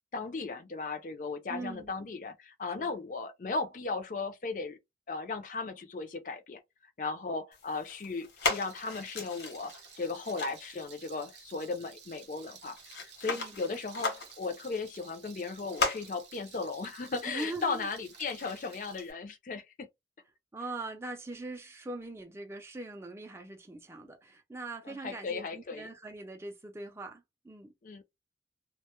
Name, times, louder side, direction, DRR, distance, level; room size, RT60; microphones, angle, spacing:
voice 1, 0.1-4.8 5.1-6.6 7.0-19.9 24.9-25.9 27.8-28.0, left 4 dB, 45° left, 0.4 m, -36 dB
voice 2, 1.5-2.1 2.8-2.9 13.3-13.6 17.3-17.9 20.5-27.7, right 2 dB, 15° right, 0.4 m, -42 dB
sound 1, 7.5-19.1, left 3 dB, 80° left, 0.9 m, -39 dB
Rattle, 8.4-19.0, right 9 dB, 85° right, 0.6 m, -54 dB
2.1 x 2.0 x 2.9 m
head